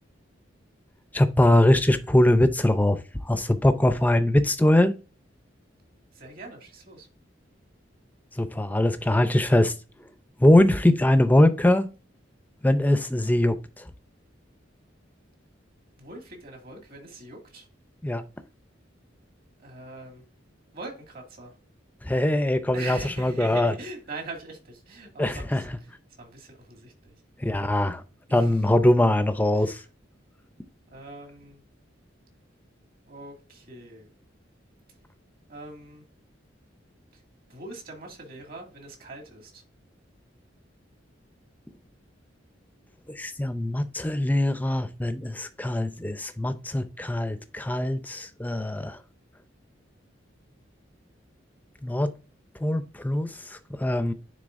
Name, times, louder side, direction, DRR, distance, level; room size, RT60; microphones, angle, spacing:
voice 1, 1.1-4.9 8.4-9.7 10.4-11.9 12.6-13.9 18.0-18.2 22.0-23.7 25.2-25.6 27.4-28.0 28.3-29.8 43.1-49.0 51.8-52.1 52.6-54.1, left 1 dB, 10° left, 0.6 m, -22 dB
voice 2, 6.1-7.1 16.0-17.7 19.6-20.2 20.7-21.6 22.7-27.2 27.5-27.7 28.3-28.7 29.5-29.8 30.9-31.6 33.1-34.1 34.9-35.0 35.5-36.1 37.1-37.2 37.5-39.6, right 2 dB, 50° right, 2.3 m, -42 dB
9.7 x 3.7 x 2.6 m
head